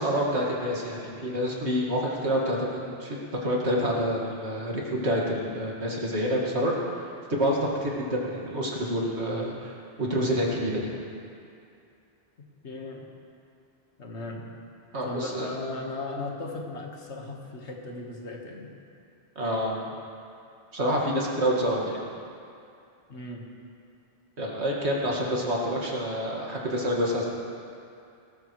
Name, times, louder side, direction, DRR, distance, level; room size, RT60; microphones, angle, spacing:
voice 1, 0.0-3.2 3.4-6.7 7.3-10.9 14.9-15.5 19.4-19.9 20.7-22.0 24.4-27.2, equal, 85° right, -3 dB, 2.2 m, -27 dB
voice 2, 12.6-13.1 14.0-14.4 15.0-18.7 23.1-23.4 25.3-25.4, left 2 dB, 85° left, 0 dB, 1.8 m, -36 dB
19.0 x 13.5 x 3.2 m, 2.5 s
omnidirectional pair, 1.1 m